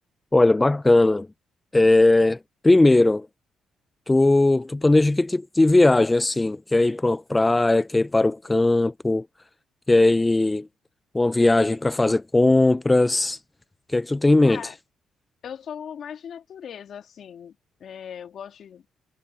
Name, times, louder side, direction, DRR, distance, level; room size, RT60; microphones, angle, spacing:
voice 1, 0.3-1.3 1.7-3.3 4.1-9.3 9.9-10.7 11.1-13.4 13.9-14.6, left 2 dB, 15° left, 0.4 m, -19 dB
voice 2, 14.4-14.8 15.4-17.6 17.8-18.9, left 8 dB, 60° left, 2.3 m, -38 dB
cardioid pair, 90°, 0 cm